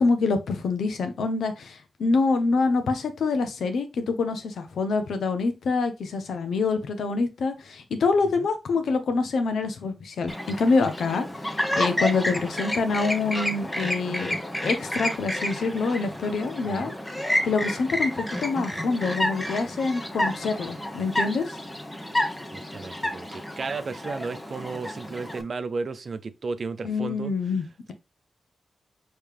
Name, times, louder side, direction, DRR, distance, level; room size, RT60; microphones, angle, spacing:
voice 1, 0.0-14.4 14.6-16.9 17.4-21.6 26.8-27.9, left 4 dB, 80° left, 0.8 m, -26 dB
Chirp tweet, 10.3-25.4, left 1 dB, 15° left, 1.1 m, -30 dB
voice 2, 16.6-17.0 22.5-27.3, right 4 dB, 55° right, 0.5 m, -34 dB
4.7 x 3.2 x 3.5 m
cardioid pair, 60°, 0 cm